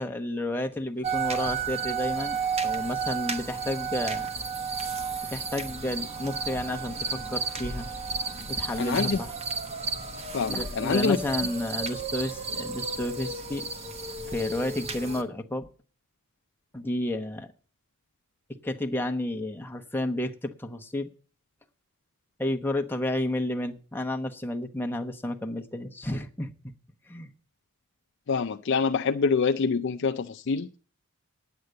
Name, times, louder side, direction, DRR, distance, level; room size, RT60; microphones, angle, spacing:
voice 1, 0.0-4.3 5.3-7.9 8.5-9.3 10.5-13.7 14.3-15.7 16.7-17.5 18.6-21.1 22.4-26.5 27.1-27.3, left 1 dB, 10° left, 1.0 m, -31 dB
sound 1, 0.7-15.1, equal, 85° right, 6.4 m, -60 dB
sound 2, 1.0-15.2, right 4 dB, 30° right, 1.0 m, -32 dB
voice 2, 8.8-9.2 10.3-11.2 28.3-30.7, left 5 dB, 55° left, 0.5 m, -25 dB
9.5 x 8.2 x 7.7 m
head